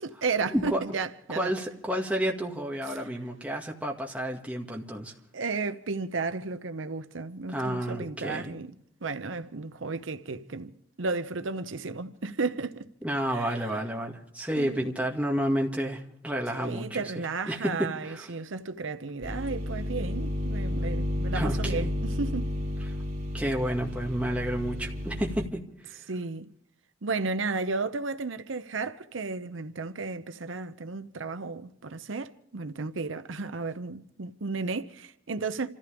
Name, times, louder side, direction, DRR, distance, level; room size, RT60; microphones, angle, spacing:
voice 1, 0.0-1.5 5.3-8.8 9.0-12.9 13.3-13.7 14.6-14.9 16.5-22.5 26.1-26.5 27.0-35.7, right 4 dB, 80° right, 0.8 m, -33 dB
voice 2, 0.5-0.8 1.3-5.1 7.5-8.5 13.0-17.1 17.5-18.3 21.3-21.9 23.3-26.0, equal, 5° right, 2.0 m, -30 dB
sound 1, 19.2-25.5, left 1 dB, 40° right, 3.9 m, -31 dB
28.0 x 15.0 x 3.5 m
head